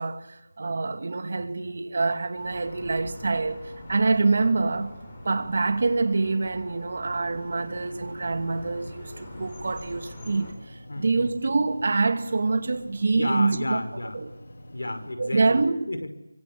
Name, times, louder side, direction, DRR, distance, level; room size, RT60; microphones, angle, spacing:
voice 1, 0.0-5.0 5.2-13.8 14.1-14.3 15.2-15.9, right 3 dB, 40° right, 2.5 m, -26 dB
sound 1, 2.4-10.5, left 1 dB, 20° left, 6.6 m, -44 dB
sound 2, 7.1-15.1, left 1 dB, 55° left, 4.4 m, -47 dB
voice 2, 10.9-11.3 13.2-14.2 14.7-16.1, left 1 dB, 80° left, 5.6 m, -33 dB
27.0 x 24.5 x 8.7 m
figure-of-eight pair, 175°, 0 cm